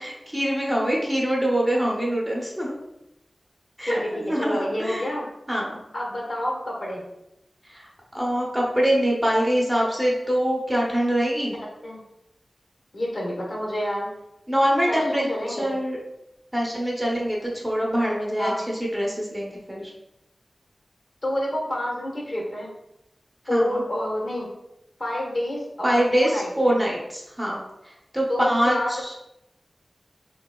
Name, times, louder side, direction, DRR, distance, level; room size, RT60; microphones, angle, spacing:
voice 1, 0.0-2.8 3.8-5.1 5.5-5.8 7.6-11.5 14.5-16.0 16.5-19.9 23.5-23.8 25.8-27.6 27.8-29.1, equal, 10° right, -3 dB, 0.6 m, -24 dB
voice 2, 4.4-5.3 5.9-7.0 11.8-12.0 12.9-14.1 14.9-15.7 18.4-18.6 21.2-22.7 23.5-24.5 25.0-26.7 28.3-29.1, left 1 dB, 55° left, -3 dB, 1.0 m, -28 dB
3.8 x 3.0 x 2.2 m, 0.88 s
wide cardioid pair, 95°, 0 cm